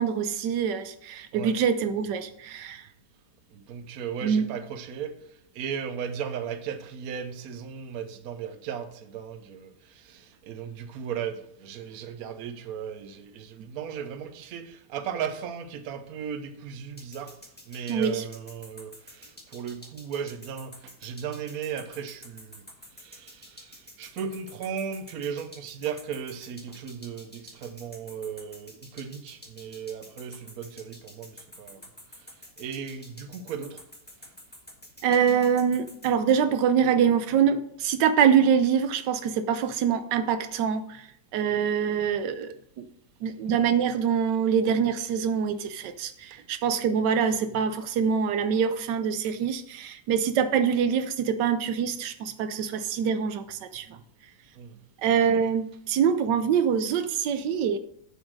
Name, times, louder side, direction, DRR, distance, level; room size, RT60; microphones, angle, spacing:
voice 1, 0.0-2.8 4.2-4.5 17.9-18.2 35.0-41.0 41.3-42.8 43.2-54.0 55.0-57.8, right 7 dB, 90° right, 1.3 m, -25 dB
voice 2, 3.5-5.2 5.5-17.3 17.7-22.7 23.0-31.8 32.6-33.8 46.3-46.4 54.6-54.7, right 7 dB, 65° right, 1.2 m, -36 dB
sound 1, 17.0-36.1, left 1 dB, 5° left, 1.2 m, -48 dB
8.0 x 5.6 x 6.2 m
omnidirectional pair, 1.8 m